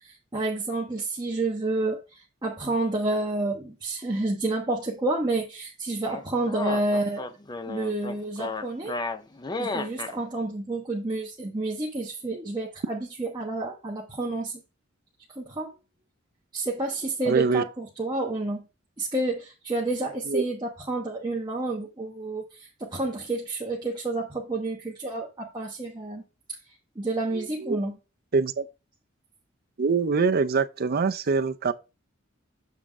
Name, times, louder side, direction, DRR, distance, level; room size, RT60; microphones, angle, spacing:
voice 1, 0.0-7.3 7.7-8.9 9.6-14.6 15.4-15.7 16.5-18.6 19.0-26.2 27.0-28.0, right 2 dB, 20° right, 1.1 m, -29 dB
sound 1, 6.1-10.1, left 3 dB, 20° left, 0.5 m, -33 dB
voice 2, 17.3-17.6 20.2-20.5 27.3-27.8 28.3-28.6 29.8-31.7, right 4 dB, 50° right, 0.5 m, -24 dB
7.2 x 3.6 x 4.9 m
head